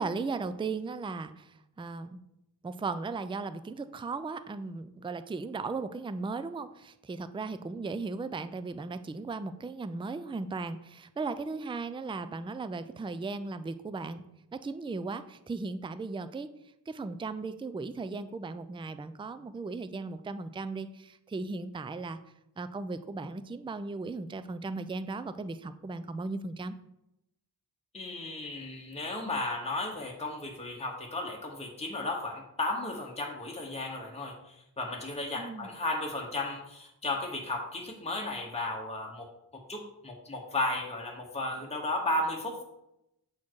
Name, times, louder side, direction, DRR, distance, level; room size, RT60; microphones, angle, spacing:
voice 1, 0.0-2.2 2.6-14.2 14.5-16.5 16.9-22.2 22.6-26.8 35.4-35.7, right 3 dB, 15° right, 12 dB, 0.3 m, -37 dB
voice 2, 27.9-42.6, left 2 dB, 15° left, 0 dB, 1.0 m, -34 dB
7.2 x 4.4 x 4.6 m, 0.84 s
wide cardioid pair, 70°, 40 cm